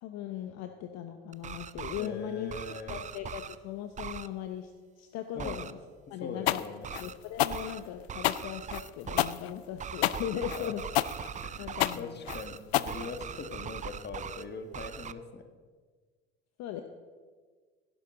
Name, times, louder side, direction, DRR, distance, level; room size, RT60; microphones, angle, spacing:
voice 1, 0.0-4.7 5.0-5.8 6.1-6.6 7.0-10.8 11.6-12.2 16.6-16.8, left 10 dB, 55° left, 7 dB, 0.9 m, -38 dB
sound 1, 1.3-2.1 2.5-3.6 4.0-4.3 5.4-5.7 6.8-7.1 7.5-7.8 8.1-9.3 9.8-12.0 12.3-12.6 12.9-14.4 14.7-15.1, right 8 dB, 25° right, 0.5 m, -40 dB
voice 2, 2.0-3.0 5.3-5.6 6.2-6.9 10.6-10.8 11.4-15.5, left 4 dB, 35° left, 6 dB, 1.8 m, -41 dB
sound 2, 6.5-13.5, left 15 dB, 80° left, 0.5 m, -29 dB
16.5 x 11.0 x 3.9 m, 1.5 s
hypercardioid pair, 65°, 32 cm